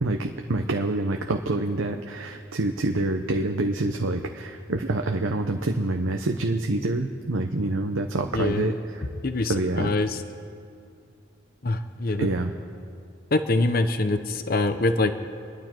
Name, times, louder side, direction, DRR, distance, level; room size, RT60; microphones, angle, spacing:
voice 1, 0.0-9.1 9.4-9.9 12.2-12.5, right 2 dB, 85° right, 4 dB, 0.9 m, -26 dB
voice 2, 8.3-8.7 9.2-10.2 11.6-12.3 13.3-15.1, left 2 dB, 45° left, 9 dB, 0.8 m, -24 dB
28.0 x 11.5 x 4.5 m, 2.5 s
head